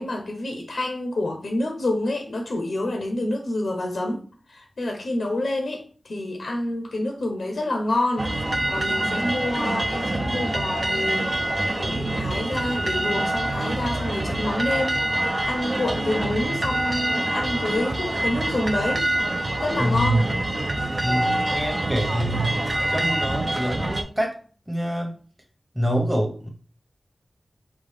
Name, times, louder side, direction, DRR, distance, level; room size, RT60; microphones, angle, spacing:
voice 1, 0.0-11.3 11.7-15.2 15.4-19.1 19.6-20.3, left 1 dB, 75° left, 0.8 m, -28 dB
sound 1, 8.2-24.0, right 1 dB, 40° right, 0.6 m, -26 dB
voice 2, 19.8-20.2 21.0-24.4 24.7-25.1 25.7-26.5, equal, 10° right, 1.0 m, -26 dB
5.4 x 2.4 x 3.3 m
wide cardioid pair, 80°, 0 cm